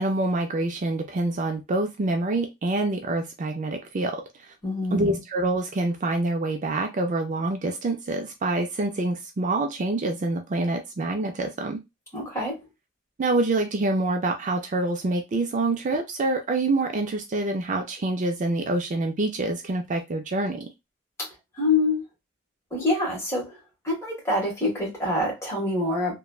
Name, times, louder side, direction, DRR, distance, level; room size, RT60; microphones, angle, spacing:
voice 1, 0.0-4.5 4.9-11.8 13.2-20.7, right 2 dB, 40° right, 0.4 m, -26 dB
voice 2, 4.6-5.2 12.1-12.6 21.2-21.3 21.5-22.0 22.7-23.6 23.8-26.2, left 2 dB, 15° left, 1.4 m, -26 dB
3.0 x 2.2 x 2.3 m
head